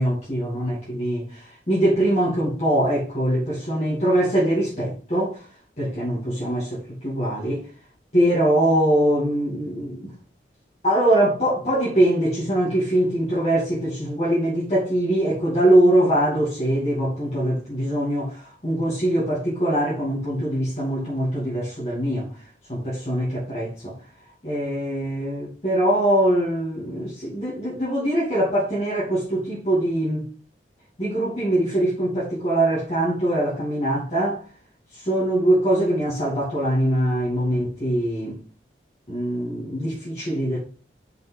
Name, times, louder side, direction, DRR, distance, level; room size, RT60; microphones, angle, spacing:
voice 1, 0.0-5.4 5.8-7.6 8.1-10.1 10.8-22.3 22.7-24.0 24.4-30.3 31.0-34.4 34.9-38.4 39.1-40.6, right 1 dB, 40° left, 2.6 m, -22 dB
5.8 x 5.4 x 5.6 m
head